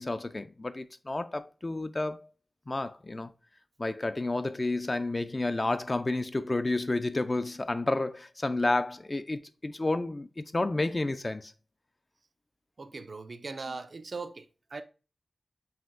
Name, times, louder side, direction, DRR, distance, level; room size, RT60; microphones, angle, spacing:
voice 1, 0.0-2.2 2.7-3.3 3.8-11.5, left 2 dB, 35° left, 0.3 m, -30 dB
voice 2, 12.8-14.5 14.7-14.8, right 4 dB, 60° right, 0.4 m, -39 dB
5.5 x 2.6 x 2.5 m
wide cardioid pair, 70°, 0 cm